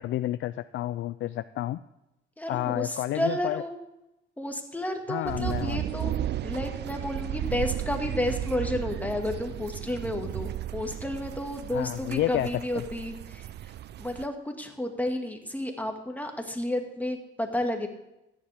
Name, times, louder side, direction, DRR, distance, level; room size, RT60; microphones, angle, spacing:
voice 1, 0.0-1.8 2.5-3.6 5.1-5.8 11.7-12.8, left 14 dB, 75° left, 13 dB, 0.4 m, -30 dB
voice 2, 2.4-3.8 4.4-13.5 14.0-17.9, left 1 dB, 10° left, 3 dB, 1.9 m, -31 dB
Thunder Roll., 5.2-14.2, right 12 dB, 60° right, 0.4 m, -34 dB
14.5 x 10.0 x 3.5 m, 0.91 s
cardioid pair, 90°, 20 cm